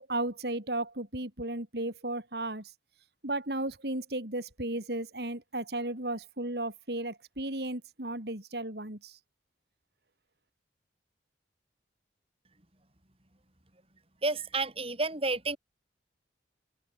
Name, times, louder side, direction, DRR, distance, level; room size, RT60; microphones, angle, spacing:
voice 1, 0.0-2.7 3.2-9.2, right 2 dB, 60° right, 3.7 m, -34 dB
voice 2, 14.2-15.6, right 3 dB, 30° right, 4.9 m, -30 dB
head